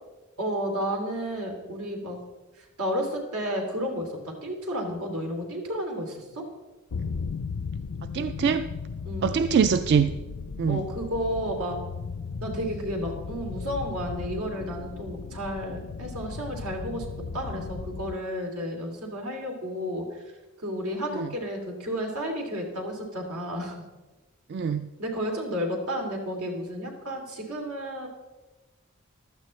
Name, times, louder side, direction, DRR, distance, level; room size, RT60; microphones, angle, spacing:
voice 1, 0.4-2.2 2.6-6.4 9.0-9.4 10.7-11.8 12.4-17.0 17.3-20.2 20.6-23.7 25.0-28.1, equal, 90° right, 2.8 m, -32 dB
sound 1, 6.9-18.2, left 5 dB, 80° left, 0.5 m, -36 dB
voice 2, 8.1-8.7 9.2-10.1 10.6-10.8 24.5-24.9, right 6 dB, 50° right, 0.3 m, -23 dB
15.5 x 12.0 x 3.2 m
head